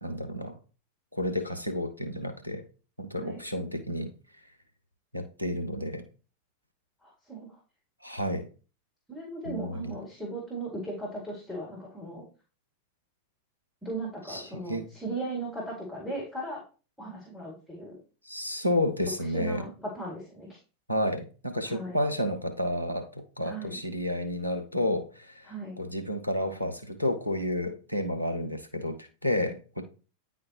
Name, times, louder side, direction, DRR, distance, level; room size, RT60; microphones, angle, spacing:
voice 1, 0.0-0.6 1.1-2.6 3.0-4.1 5.1-6.0 8.0-8.5 9.4-9.9 14.3-14.9 18.2-19.7 20.9-29.8, left 1 dB, 90° right, 7 dB, 1.0 m, -31 dB
voice 2, 7.0-7.5 9.1-12.2 13.8-16.6 17.0-17.9 19.3-19.7 19.9-20.6 21.7-22.0 23.4-23.8 25.5-25.8, right 2 dB, 5° left, -3 dB, 2.3 m, -37 dB
9.4 x 4.2 x 2.9 m, 0.35 s
figure-of-eight pair, 90°, 0 cm